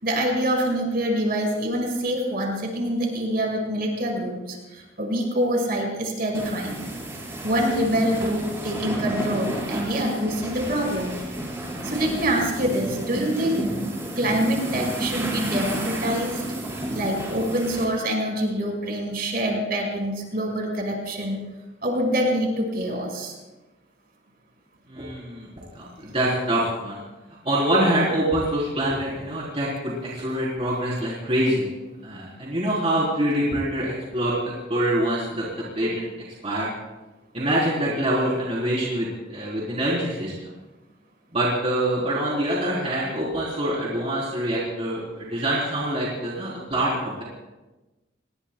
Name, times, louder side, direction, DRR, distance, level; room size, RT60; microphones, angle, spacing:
voice 1, 0.0-6.7 7.4-11.1 11.8-13.7 14.2-16.4 16.9-21.4 21.8-23.3, equal, 55° right, 0 dB, 5.3 m, -25 dB
sound 1, 6.3-17.8, right 1 dB, 15° right, 4.8 m, -31 dB
voice 2, 24.9-25.5 25.7-27.0 27.4-31.7 32.0-34.3 34.7-36.1 36.4-36.7 37.3-40.5 41.3-47.2, right 1 dB, 35° right, -6 dB, 3.7 m, -25 dB
29.5 x 20.0 x 2.3 m, 1.1 s
head